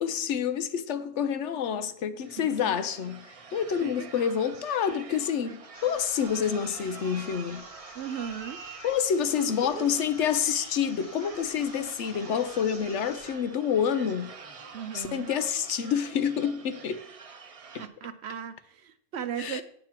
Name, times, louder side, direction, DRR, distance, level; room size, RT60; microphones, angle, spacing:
voice 1, 0.0-3.3 3.5-7.6 8.8-14.3 14.9-17.0 17.7-17.8 19.4-19.6, left 8 dB, 65° left, 0.9 m, -28 dB
sound 1, 2.2-17.9, right 5 dB, 40° right, 0.5 m, -46 dB
sound 2, 5.7-13.5, left 2 dB, 40° left, 1.5 m, -51 dB
voice 2, 7.9-8.6 9.4-9.9 14.7-15.3 17.8-19.6, right 8 dB, 65° right, 0.8 m, -37 dB
8.8 x 4.5 x 7.3 m
omnidirectional pair, 1.3 m